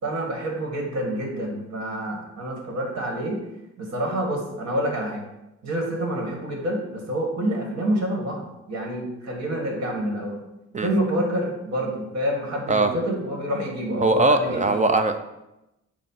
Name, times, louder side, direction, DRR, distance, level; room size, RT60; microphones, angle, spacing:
voice 1, 0.0-3.4 3.8-5.2 5.6-10.4 10.8-14.8, right 1 dB, 55° right, 0 dB, 2.0 m, -27 dB
voice 2, 14.0-15.2, right 2 dB, 25° right, 8 dB, 0.5 m, -20 dB
7.3 x 2.5 x 5.7 m, 0.92 s
cardioid pair, 90°, 30 cm